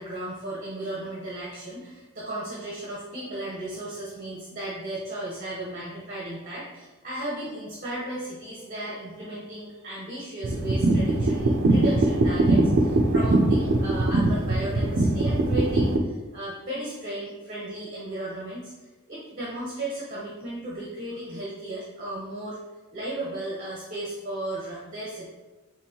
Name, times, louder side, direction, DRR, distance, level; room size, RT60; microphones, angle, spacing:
voice 1, 0.0-18.7 19.1-22.6 22.9-25.3, right 1 dB, 35° right, -6 dB, 0.8 m, -35 dB
sound 1, 10.4-16.0, right 2 dB, 60° right, 0.5 m, -22 dB
4.5 x 3.0 x 2.8 m, 1.2 s
head